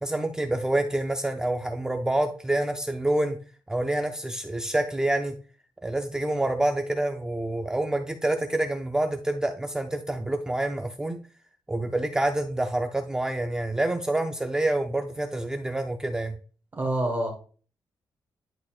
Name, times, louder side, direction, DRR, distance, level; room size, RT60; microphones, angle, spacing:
voice 1, 0.0-3.4 3.7-5.4 5.8-11.2 11.7-16.3, right 1 dB, 10° right, 4 dB, 0.5 m, -27 dB
voice 2, 16.7-17.3, right 1 dB, 25° right, 1 dB, 1.5 m, -26 dB
10.5 x 4.0 x 2.4 m, 0.39 s
wide cardioid pair, 160°, 8 cm